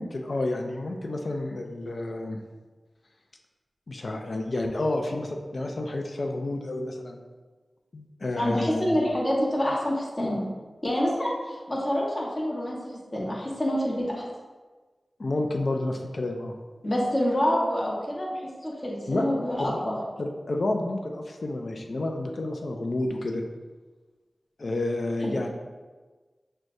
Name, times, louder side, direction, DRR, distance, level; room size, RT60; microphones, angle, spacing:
voice 1, 0.0-2.4 3.9-7.2 7.9-8.9 15.2-16.5 19.1-19.2 19.6-19.8 20.2-23.4 24.6-25.5, left 2 dB, 70° left, 3 dB, 0.4 m, -30 dB
voice 2, 8.4-10.4 10.8-14.2 16.8-18.3 18.6-19.9 25.2-25.4, equal, 40° left, -5 dB, 1.1 m, -27 dB
6.0 x 2.2 x 2.6 m, 1.3 s
cardioid pair, 45°, 0 cm